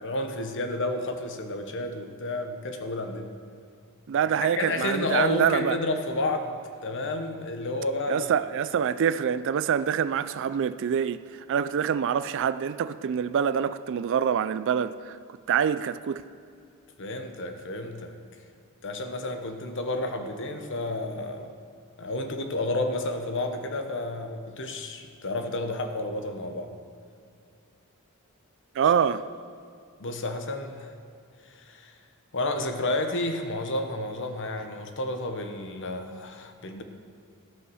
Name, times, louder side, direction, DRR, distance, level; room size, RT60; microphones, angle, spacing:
voice 1, 0.0-3.3 4.6-6.5 6.8-8.3 17.0-18.2 18.8-21.5 22.0-26.7 30.0-30.9 31.5-31.9 32.3-36.8, left 2 dB, 55° left, 1.0 m, -31 dB
voice 2, 4.1-5.8 8.1-11.2 11.5-15.2 15.5-16.2 28.7-29.2, right 8 dB, 55° right, 0.3 m, -25 dB
14.0 x 5.4 x 6.3 m
head